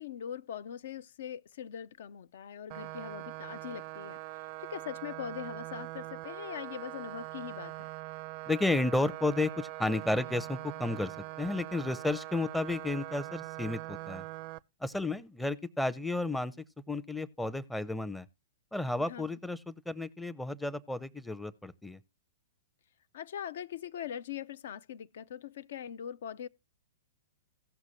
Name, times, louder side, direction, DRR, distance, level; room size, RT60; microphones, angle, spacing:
voice 1, 0.0-4.2 4.6-7.9 19.0-19.2 23.1-26.5, left 9 dB, 60° left, 0.4 m, -41 dB
sound 1, 2.7-14.6, right 18 dB, 45° right, 0.4 m, -42 dB
voice 2, 8.5-14.2 14.8-16.5 16.9-18.3 18.7-22.0, left 2 dB, 5° left, 0.6 m, -32 dB
16.5 x 6.0 x 2.8 m
hypercardioid pair, 110°, 0 cm